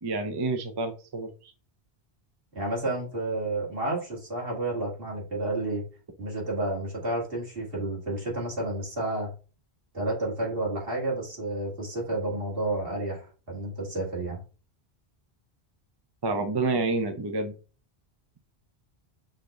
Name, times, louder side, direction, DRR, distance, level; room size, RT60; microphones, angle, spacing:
voice 1, 0.0-1.3 16.2-17.5, right 3 dB, 30° right, 7 dB, 0.5 m, -28 dB
voice 2, 2.5-5.8 6.2-9.3 9.9-14.4, right 2 dB, 60° right, -3 dB, 2.4 m, -31 dB
6.2 x 2.6 x 3.2 m, 0.35 s
omnidirectional pair, 1.1 m